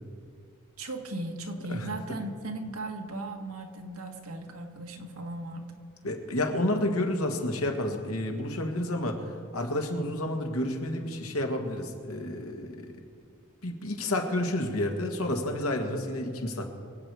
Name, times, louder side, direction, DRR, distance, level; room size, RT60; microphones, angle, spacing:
voice 1, 0.8-5.7, right 2 dB, 75° right, 3 dB, 1.7 m, -37 dB
voice 2, 1.7-2.2 6.0-12.9 13.6-16.7, left 1 dB, 70° left, 3 dB, 1.8 m, -30 dB
24.5 x 8.4 x 4.8 m, 2.3 s
head